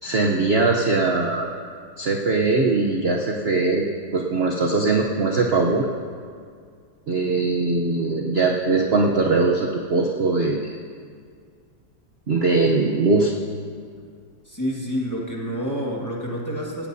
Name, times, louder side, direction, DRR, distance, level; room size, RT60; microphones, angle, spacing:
voice 1, 0.0-1.5 2.0-3.9 4.1-5.9 7.1-10.7 12.3-13.3, right 3 dB, 50° right, 0 dB, 0.7 m, -21 dB
voice 2, 14.4-16.9, equal, 10° left, -3 dB, 1.5 m, -28 dB
17.5 x 15.0 x 2.7 m, 2.2 s
omnidirectional pair, 2.1 m